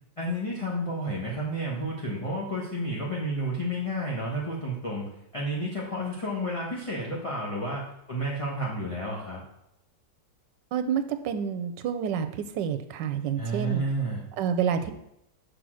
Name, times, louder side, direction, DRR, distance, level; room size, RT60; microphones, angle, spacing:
voice 1, 0.2-9.4 13.4-14.2, right 1 dB, 20° left, -5 dB, 1.0 m, -31 dB
voice 2, 10.7-13.8 14.4-14.9, right 7 dB, 90° right, 9 dB, 1.3 m, -28 dB
6.4 x 5.1 x 6.2 m, 0.80 s
omnidirectional pair, 1.9 m